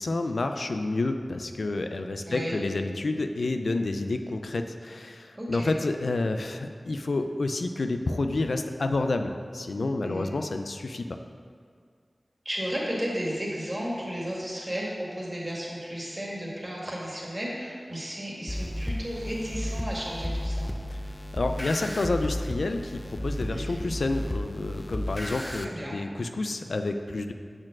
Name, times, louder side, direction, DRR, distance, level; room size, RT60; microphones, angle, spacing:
voice 1, 0.0-11.2 21.3-27.3, left 2 dB, 80° left, 6 dB, 0.4 m, -29 dB
voice 2, 2.2-2.6 5.3-5.7 10.0-10.3 12.5-20.7 23.5-23.8 25.3-26.0, equal, 35° right, -4 dB, 2.0 m, -34 dB
sound 1, 18.5-25.7, equal, 20° left, 0.5 m, -33 dB
6.3 x 4.3 x 6.0 m, 2.1 s
wide cardioid pair, 50°, 0 cm